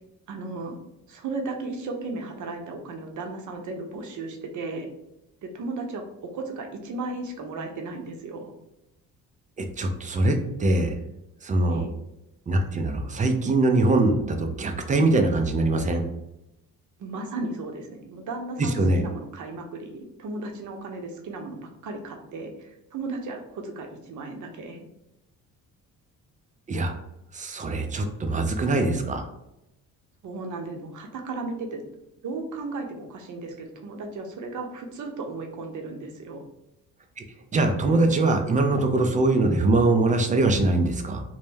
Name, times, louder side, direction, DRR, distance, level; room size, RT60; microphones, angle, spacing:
voice 1, 0.3-0.8 1.1-4.9 5.4-8.5 11.7-11.9 17.0-24.8 30.2-31.8 32.2-36.4, right 3 dB, 45° right, 4 dB, 0.6 m, -35 dB
voice 2, 9.6-10.9 11.4-11.8 12.5-16.0 18.6-19.0 26.7-27.0 27.3-29.3 37.2-37.3 37.5-41.2, right 2 dB, 20° right, 5 dB, 0.3 m, -22 dB
2.1 x 2.1 x 3.2 m, 0.87 s
hypercardioid pair, 55°, 41 cm